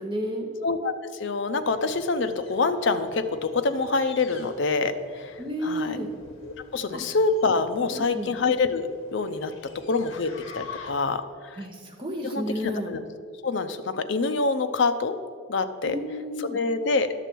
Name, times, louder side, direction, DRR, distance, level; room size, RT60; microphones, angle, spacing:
voice 1, 0.0-0.5 5.4-6.1 6.9-7.0 7.9-8.3 11.6-12.9 15.8-16.6, equal, 25° right, 0 dB, 1.0 m, -31 dB
voice 2, 0.6-6.0 6.4-11.6 12.2-13.0 13.4-15.2 15.5-16.0 16.4-17.1, left 3 dB, 60° left, 9 dB, 0.5 m, -26 dB
sound 1, 1.4-11.3, left 5 dB, 80° left, 1.1 m, -48 dB
10.5 x 6.8 x 4.5 m, 2.1 s
head